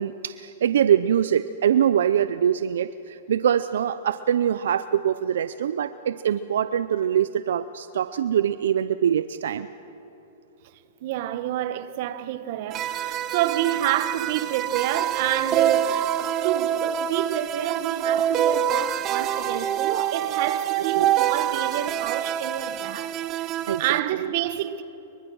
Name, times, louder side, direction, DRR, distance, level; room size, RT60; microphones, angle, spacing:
voice 1, 0.0-9.7 21.0-21.1 23.7-24.0, right 9 dB, 80° right, 0.6 m, -23 dB
voice 2, 11.0-23.5 23.8-24.8, right 13 dB, 50° right, 1.2 m, -28 dB
sound 1, 12.7-24.0, right 10 dB, 30° right, 0.9 m, -26 dB
28.0 x 23.5 x 6.3 m
hypercardioid pair, 145°, 0 cm